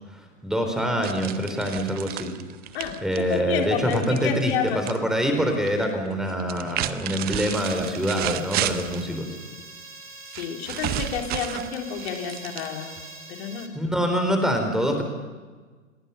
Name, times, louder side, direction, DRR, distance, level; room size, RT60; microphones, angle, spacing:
voice 1, 0.4-2.3 3.0-9.3 13.7-15.0, equal, ahead, 4 dB, 4.0 m, -25 dB
sound 1, 1.0-5.0 5.2-5.8 6.4-9.1 10.3-13.0, right 13 dB, 25° right, 0.9 m, -32 dB
voice 2, 2.7-4.9 10.4-12.9 13.3-13.7, left 7 dB, 50° left, 4 dB, 3.3 m, -30 dB
sound 2, 7.5-13.7, right 3 dB, 90° right, 3.0 m, -44 dB
29.5 x 19.5 x 5.8 m, 1.4 s
figure-of-eight pair, 105°, 39 cm